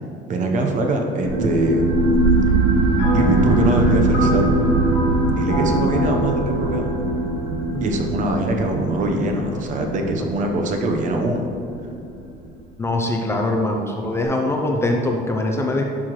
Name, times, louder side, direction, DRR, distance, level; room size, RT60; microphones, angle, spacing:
voice 1, 0.3-2.1 3.1-4.6 5.3-6.9 7.8-11.4, right 2 dB, 40° right, 3 dB, 0.9 m, -23 dB
sound 1, 1.2-12.4, right 2 dB, 90° right, 1.1 m, -21 dB
sound 2, 3.0-8.5, left 1 dB, 55° left, 1.9 m, -29 dB
voice 2, 12.8-15.8, left 2 dB, 15° left, 1 dB, 0.5 m, -22 dB
11.0 x 5.8 x 3.1 m, 2.7 s
cardioid pair, 170°, 19 cm